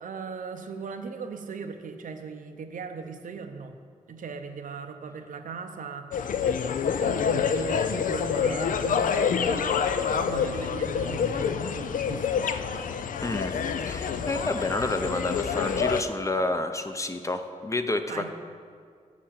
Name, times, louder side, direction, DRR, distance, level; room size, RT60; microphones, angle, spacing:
voice 1, 0.0-3.7 4.1-6.1 7.0-12.7 14.2-14.4 18.1-18.3, right 5 dB, 90° right, 7 dB, 0.7 m, -39 dB
sound 1, 6.1-16.0, left 6 dB, 85° left, 0.4 m, -27 dB
voice 2, 13.2-13.6 13.8-18.3, left 2 dB, 25° left, 7 dB, 0.6 m, -29 dB
7.2 x 6.4 x 7.4 m, 2.1 s
wide cardioid pair, 90°, 13 cm